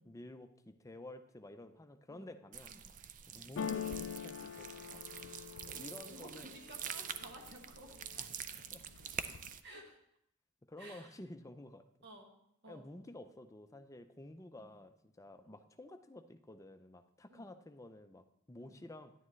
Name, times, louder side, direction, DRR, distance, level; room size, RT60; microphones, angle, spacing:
voice 1, 0.0-2.7 3.3-5.0 5.6-6.5 8.2-8.8 10.7-11.9 12.7-19.1, left 1 dB, 15° left, 8 dB, 0.5 m, -52 dB
sound 1, 2.5-9.6, right 8 dB, 40° right, 0.4 m, -46 dB
sound 2, 3.6-7.4 7.9-8.5 8.8-9.5, left 8 dB, 80° left, 0.4 m, -44 dB
voice 2, 6.1-8.0 9.6-10.0 10.8-11.2 12.0-12.4 12.6-12.9 14.6-14.8 15.4-15.5 17.3-17.5 18.6-18.8, right 1 dB, 60° right, 2 dB, 1.6 m, -55 dB
10.0 x 9.7 x 3.2 m, 0.74 s
head